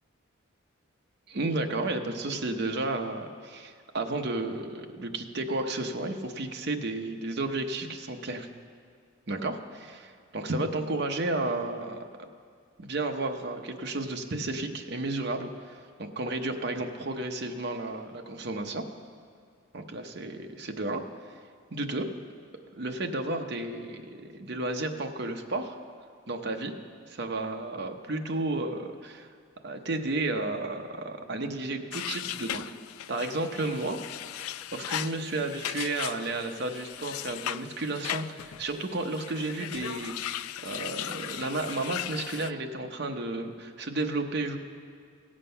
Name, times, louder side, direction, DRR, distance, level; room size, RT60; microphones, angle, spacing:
voice 1, 1.3-8.5 9.3-12.0 12.8-18.8 19.7-21.0 21.7-22.1 22.7-25.8 26.3-26.7 27.1-29.3 29.6-32.7 33.1-34.0 34.3-44.6, right 2 dB, 50° right, 4 dB, 0.8 m, -32 dB
sound 1, 31.9-42.5, left 12 dB, 90° left, 0.3 m, -37 dB
16.5 x 7.5 x 5.6 m, 2.1 s
head